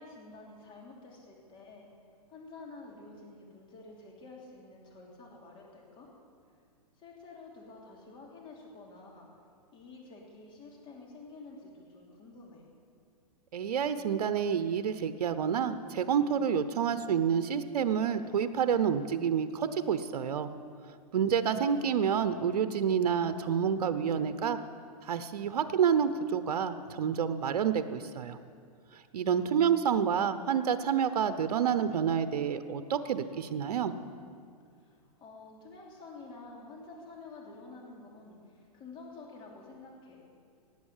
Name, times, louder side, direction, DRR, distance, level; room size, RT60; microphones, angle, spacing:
voice 1, 0.0-1.9 2.3-6.1 7.0-9.3 9.7-12.6 21.4-21.8 34.8-40.2, left 3 dB, 25° left, -1 dB, 3.1 m, -50 dB
voice 2, 13.5-20.5 21.1-24.6 25.0-28.4 29.1-33.9, right 7 dB, 80° right, 11 dB, 0.8 m, -28 dB
18.0 x 8.0 x 7.3 m, 2.3 s
hypercardioid pair, 140°, 20 cm